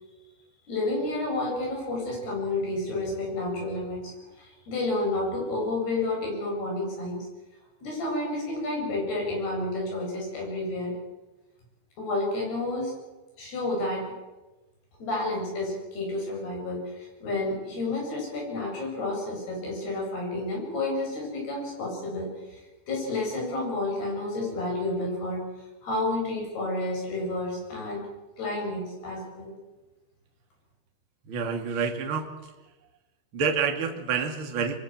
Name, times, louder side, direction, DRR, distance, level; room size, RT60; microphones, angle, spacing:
voice 1, 0.7-7.3 7.8-10.9 12.0-12.9 13.4-14.1 15.0-25.5 25.8-28.1 28.4-29.5, left 2 dB, 50° left, -1 dB, 10.0 m, -30 dB
voice 2, 31.2-32.3 33.3-34.8, right 6 dB, 35° right, 4 dB, 2.2 m, -28 dB
26.5 x 23.0 x 7.7 m, 1.1 s
omnidirectional pair, 5.8 m